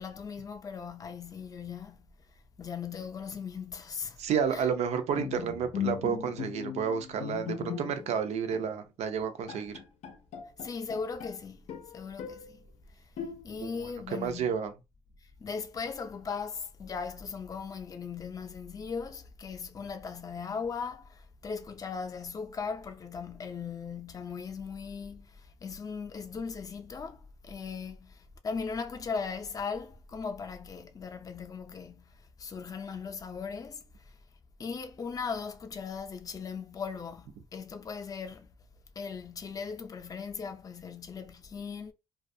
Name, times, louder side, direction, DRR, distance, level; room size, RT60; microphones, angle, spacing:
voice 1, 0.0-2.2 2.6-4.2 4.5-4.7 10.6-11.6 11.9-12.6 13.4-14.6 15.4-25.3 25.6-32.1 32.4-33.8 34.6-38.5 39.0-41.9, left 5 dB, 35° left, 0.4 m, -38 dB
voice 2, 4.2-9.8 13.6-13.7 14.1-14.7, right 7 dB, 85° right, 0.5 m, -31 dB
Bowed string instrument, 5.1-8.2 8.5-8.7 9.2-9.3 9.5-11.4 11.7-12.5 13.2-13.8, left 8 dB, 85° left, 0.5 m, -38 dB
2.3 x 2.3 x 2.6 m
cardioid pair, 95°, 11 cm